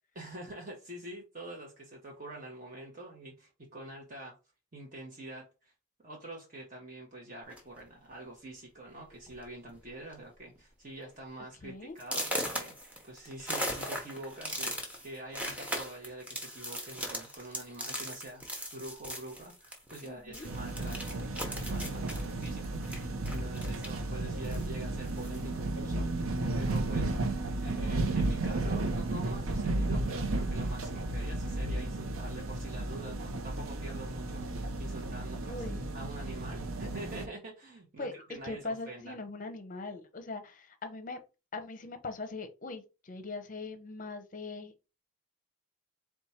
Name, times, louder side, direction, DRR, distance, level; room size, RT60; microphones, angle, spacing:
voice 1, 0.1-4.4 4.7-5.7 6.0-14.7 15.0-35.6 35.9-39.2, right 1 dB, 35° right, 0.8 m, -46 dB
sound 1, 7.5-7.8 8.6-8.7 9.1-9.4 9.7-10.1 10.6-10.7 11.1-11.2 12.0-20.1 20.3-24.1 24.4-25.5, equal, 5° right, 0.8 m, -38 dB
voice 2, 11.6-12.0 20.0-20.5 27.5-27.6 35.5-35.8 38.0-41.2 41.5-44.7, left 3 dB, 35° left, 0.6 m, -41 dB
sound 2, 20.4-37.3, right 2 dB, 70° right, 0.7 m, -33 dB
4.3 x 2.3 x 4.2 m
head